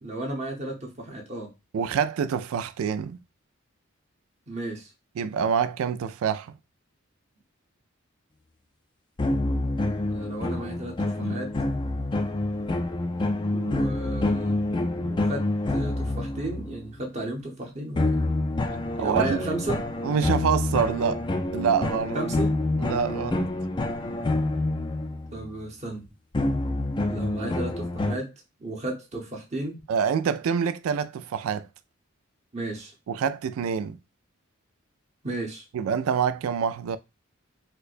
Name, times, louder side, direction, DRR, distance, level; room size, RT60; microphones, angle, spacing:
voice 1, 0.0-1.5 4.5-4.9 10.1-11.6 13.5-14.6 14.9-18.2 19.0-19.8 22.1-22.6 25.3-26.1 27.1-28.3 28.6-29.8 32.5-32.9 35.2-35.7, right 2 dB, 35° right, 0.9 m, -34 dB
voice 2, 1.7-3.2 5.2-6.5 11.2-11.3 19.0-19.4 20.0-21.2 21.5-22.2 22.8-23.5 29.9-31.7 33.1-34.0 35.7-37.0, right 7 dB, 90° right, 0.3 m, -26 dB
sound 1, 9.2-16.8 18.0-25.5 26.3-28.2, left 2 dB, 20° left, 0.3 m, -27 dB
4.5 x 2.1 x 2.5 m
head